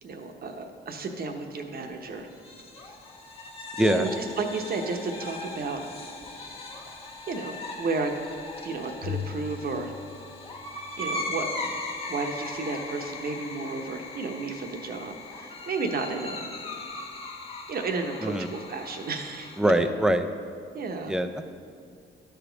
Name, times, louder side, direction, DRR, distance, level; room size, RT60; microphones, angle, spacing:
voice 1, 0.0-2.3 3.8-6.0 7.3-8.1 8.6-9.9 11.0-11.7 12.1-16.4 17.7-19.9 20.7-21.1, right 3 dB, 50° right, 4 dB, 0.9 m, -32 dB
sound 1, 2.3-19.6, left 2 dB, 30° left, 1.1 m, -39 dB
voice 2, 3.8-4.1 18.2-18.5 19.6-20.3 21.1-21.5, right 1 dB, 5° right, 7 dB, 0.5 m, -23 dB
Bowed string instrument, 9.0-11.4, left 7 dB, 85° left, 0.5 m, -39 dB
12.0 x 5.0 x 3.9 m, 2.3 s
cardioid pair, 90°, 20 cm